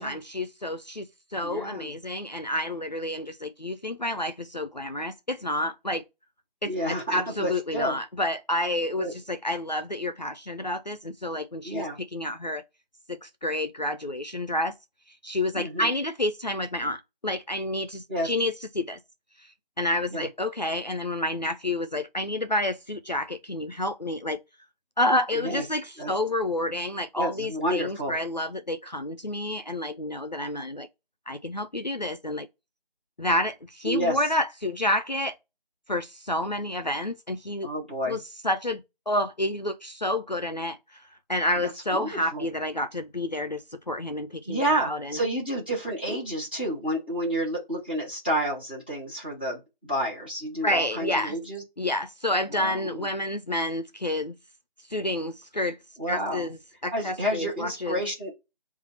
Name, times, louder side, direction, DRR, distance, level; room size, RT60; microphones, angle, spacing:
voice 1, 0.0-6.0 6.6-12.6 13.1-14.7 15.1-19.0 19.4-24.4 25.0-30.9 31.3-32.5 33.2-35.4 35.9-37.7 38.1-45.2 50.6-51.4 51.8-54.3 54.8-55.8 56.1-58.0, left 1 dB, 50° left, 0.4 m, -29 dB
voice 2, 1.4-1.9 6.6-8.0 9.0-9.1 11.6-12.0 15.5-15.9 18.1-18.3 20.1-20.2 25.4-25.6 26.0-26.1 27.2-28.1 33.9-34.2 37.6-38.2 41.6-42.4 44.5-51.6 52.5-53.0 56.0-56.5 56.9-58.3, right 1 dB, 10° right, 1.2 m, -30 dB
4.1 x 2.4 x 4.2 m
figure-of-eight pair, 170°, 29 cm